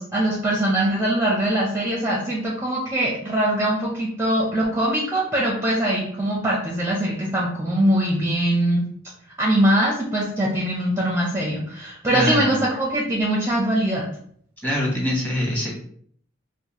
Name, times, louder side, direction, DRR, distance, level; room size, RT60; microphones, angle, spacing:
voice 1, 0.0-8.8 9.4-14.0, right 1 dB, 15° right, -3 dB, 0.6 m, -22 dB
voice 2, 12.1-12.6 14.6-15.7, equal, 10° left, -5 dB, 1.2 m, -24 dB
4.7 x 2.1 x 3.0 m, 0.62 s
head